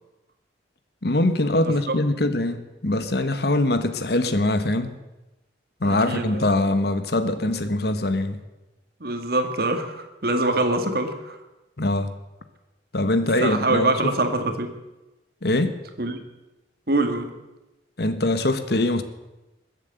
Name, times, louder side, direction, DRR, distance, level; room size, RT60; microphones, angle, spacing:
voice 1, 1.0-4.9 5.8-8.4 11.8-12.1 12.9-14.1 15.4-15.8 18.0-19.0, left 2 dB, 60° left, 10 dB, 1.3 m, -23 dB
voice 2, 5.8-6.4 9.0-11.4 13.4-14.8 16.0-16.2 16.9-17.3, right 2 dB, 55° right, 6 dB, 2.0 m, -24 dB
21.5 x 8.2 x 8.0 m, 1.0 s
head